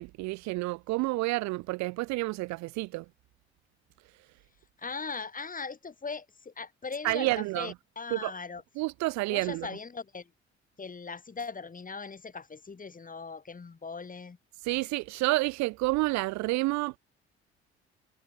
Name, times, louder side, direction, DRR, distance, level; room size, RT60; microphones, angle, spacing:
voice 1, 0.0-3.0 7.0-7.7 8.1-8.3 8.8-9.7 14.6-17.0, right 21 dB, 55° right, 0.5 m, -29 dB
voice 2, 4.8-8.6 9.3-10.3 10.8-14.4, left 4 dB, 25° left, 1.8 m, -39 dB
figure-of-eight pair, 50°, 33 cm